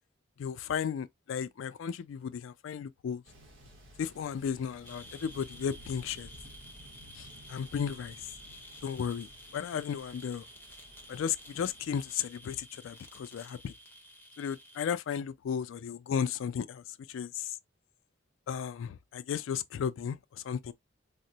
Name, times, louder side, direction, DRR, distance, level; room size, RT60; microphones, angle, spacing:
voice 1, 0.4-3.2 4.0-6.3 7.2-8.2 8.8-10.5 11.1-13.7 14.4-17.6 18.5-20.7, left 7 dB, 80° left, 0.3 m, -35 dB
Thunder, 3.2-12.1, equal, 90° right, 0.9 m, -55 dB
sound 1, 4.8-14.9, equal, 10° left, 0.6 m, -52 dB
3.6 x 2.0 x 2.6 m
head